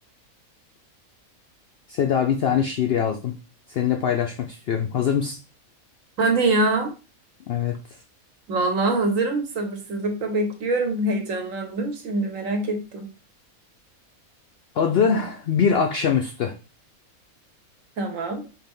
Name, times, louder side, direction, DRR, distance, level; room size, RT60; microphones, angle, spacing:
voice 1, 1.9-3.3 3.7-5.4 7.5-7.8 14.8-16.5, left 7 dB, 70° left, 0.5 m, -23 dB
voice 2, 6.2-6.9 8.5-13.1 18.0-18.4, right 2 dB, 65° right, 1.3 m, -24 dB
4.7 x 3.2 x 3.5 m
omnidirectional pair, 1.5 m